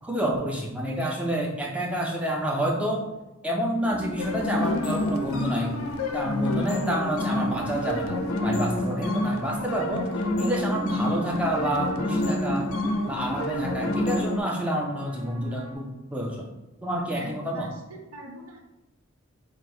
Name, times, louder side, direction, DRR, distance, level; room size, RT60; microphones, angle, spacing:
voice 1, 0.0-3.1 3.4-5.8 6.1-12.7 13.1-16.5 16.8-17.7, right 1 dB, 5° right, 0 dB, 0.5 m, -29 dB
sound 1, 3.8-15.7, right 1 dB, 55° right, 1.1 m, -37 dB
sound 2, 4.2-14.4, left 2 dB, 70° left, 0.5 m, -28 dB
voice 2, 17.1-18.6, right 1 dB, 75° right, 0 dB, 0.8 m, -42 dB
5.0 x 2.1 x 4.3 m, 1.0 s
head